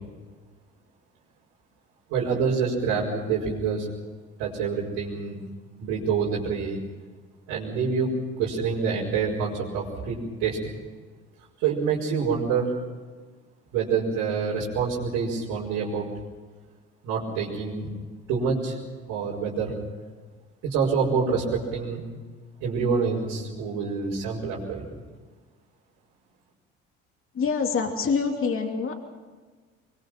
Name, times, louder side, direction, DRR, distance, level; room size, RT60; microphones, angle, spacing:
voice 1, 2.1-3.9 4.4-5.4 5.8-6.8 7.5-10.6 11.6-12.7 13.7-16.1 17.0-17.9 18.3-18.8 19.1-19.8 20.6-22.0 22.6-25.0, right 5 dB, 75° right, -6 dB, 5.2 m, -26 dB
voice 2, 27.3-28.9, left 5 dB, 40° left, 3 dB, 2.8 m, -25 dB
23.5 x 23.0 x 5.9 m, 1.4 s
hypercardioid pair, 65°, 32 cm